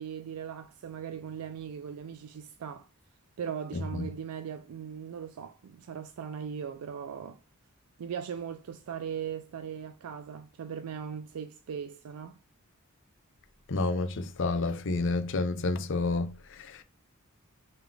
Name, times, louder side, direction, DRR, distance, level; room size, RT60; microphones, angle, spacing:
voice 1, 0.0-2.9 3.4-7.4 8.0-12.4, right 7 dB, 85° right, 0.4 m, -39 dB
voice 2, 3.7-4.1 13.7-16.8, left 3 dB, 60° left, 0.6 m, -30 dB
3.9 x 2.9 x 3.4 m
head